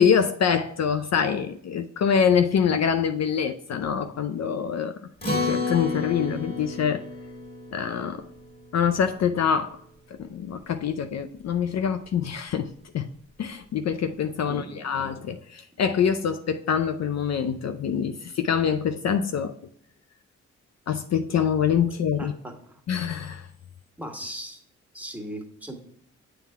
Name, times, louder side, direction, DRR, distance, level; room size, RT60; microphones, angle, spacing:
voice 1, 0.0-4.9 5.4-7.0 7.7-8.2 8.7-9.8 10.1-13.1 13.4-19.5 20.9-22.3 22.9-23.5, left 7 dB, 55° left, 9 dB, 0.5 m, -25 dB
Acoustic guitar, 5.2-9.9, left 3 dB, 30° left, 2.2 m, -32 dB
voice 2, 14.5-15.1 22.2-22.8 24.0-24.6 24.9-25.8, equal, 5° right, 2 dB, 1.5 m, -38 dB
7.4 x 3.4 x 4.6 m, 0.67 s
supercardioid pair, 50°, 32 cm